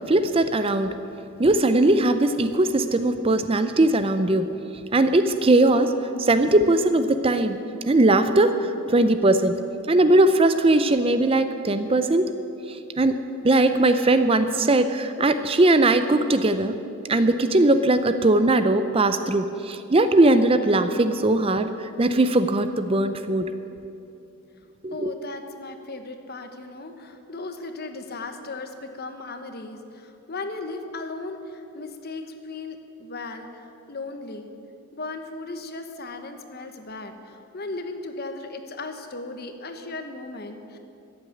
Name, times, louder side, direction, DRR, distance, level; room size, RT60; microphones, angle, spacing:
voice 1, 0.1-1.0 1.4-4.5 4.9-5.9 6.2-7.6 7.9-9.6 9.9-12.3 12.7-13.2 13.4-16.7 17.1-23.5 24.8-25.1, right 2 dB, 25° right, 10 dB, 0.5 m, -20 dB
voice 2, 24.9-34.5 34.9-40.8, left 3 dB, 45° left, 7 dB, 1.1 m, -36 dB
14.0 x 8.1 x 9.9 m, 2.7 s
head